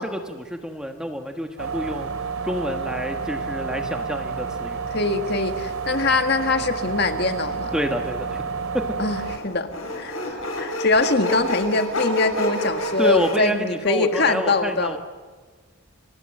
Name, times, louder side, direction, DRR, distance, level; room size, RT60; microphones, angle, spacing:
voice 1, 0.0-2.1 2.4-4.8 7.7-8.4 8.7-8.9 13.0-15.0, equal, 5° right, 5 dB, 1.5 m, -28 dB
sound 1, 1.6-9.4, right 5 dB, 90° right, 2.7 m, -30 dB
voice 2, 4.9-7.7 9.0-9.7 9.9-15.0, left 3 dB, 50° left, 7 dB, 1.7 m, -23 dB
Sawing, 8.0-8.1 9.2-13.3, left 1 dB, 75° left, 7.6 m, -29 dB
29.0 x 23.5 x 7.9 m, 1.4 s
head